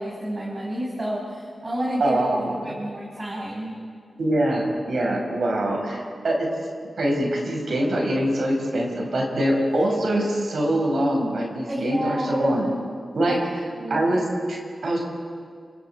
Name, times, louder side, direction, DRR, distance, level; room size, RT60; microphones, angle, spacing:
voice 1, 0.0-2.2 2.6-3.8 11.7-12.5 13.3-13.4 13.8-14.1, right 1 dB, 35° right, -4 dB, 6.1 m, -30 dB
voice 2, 2.0-2.5 4.2-6.5 7.0-12.7 13.1-13.4 13.9-15.0, right 1 dB, 75° right, -1 dB, 6.1 m, -23 dB
29.5 x 26.5 x 4.8 m, 2.1 s
wide cardioid pair, 75°, 0 cm